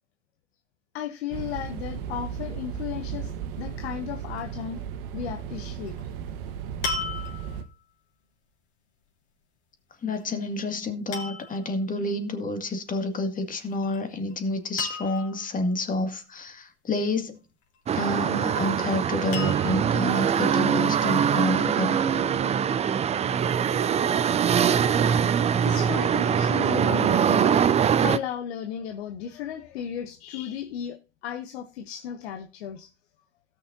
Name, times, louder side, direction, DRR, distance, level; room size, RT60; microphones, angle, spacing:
voice 1, 0.9-4.8 5.1-6.0 25.6-32.9, left 9 dB, 65° left, 1.2 m, -35 dB
sound 1, 1.3-7.6, right 8 dB, 60° right, 1.4 m, -35 dB
sound 2, 5.9-6.1 6.8-7.7 10.1-10.5 11.1-11.6 13.6-14.0 14.3-14.4 14.8-15.5 17.7-18.4 19.3-20.0 20.7-20.8, left 4 dB, 45° left, 3.6 m, -35 dB
voice 2, 10.0-17.4 18.0-22.0, left 2 dB, 25° left, 2.2 m, -29 dB
sound 3, 17.9-28.2, right 8 dB, 20° right, 0.5 m, -23 dB
17.5 x 6.6 x 2.7 m
hypercardioid pair, 85°, 34 cm